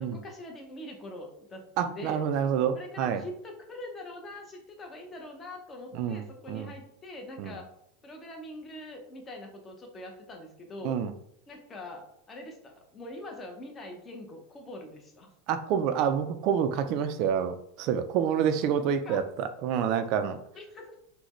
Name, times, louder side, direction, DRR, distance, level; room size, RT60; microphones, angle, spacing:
voice 1, 0.0-2.2 2.7-7.7 8.0-11.0 11.5-15.3 19.0-19.2 20.5-21.0, left 1 dB, 20° left, 2 dB, 0.7 m, -43 dB
voice 2, 1.8-3.2 5.9-6.7 7.4-7.6 10.8-11.1 15.5-20.4, right 8 dB, 50° right, 9 dB, 0.3 m, -28 dB
3.9 x 2.1 x 3.0 m, 0.73 s
supercardioid pair, 135°, 0 cm